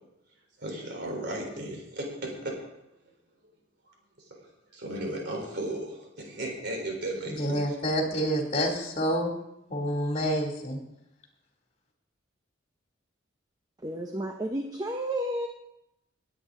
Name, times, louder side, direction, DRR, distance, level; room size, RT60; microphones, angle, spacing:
voice 1, 0.6-2.9 3.9-4.0 4.3-7.8, right 1 dB, 60° right, 0 dB, 3.8 m, -36 dB
voice 2, 7.3-9.3 9.7-10.8, equal, 35° left, 1 dB, 2.7 m, -28 dB
voice 3, 13.8-15.5, right 1 dB, 20° right, 4 dB, 0.8 m, -31 dB
19.0 x 9.2 x 3.8 m, 0.83 s
head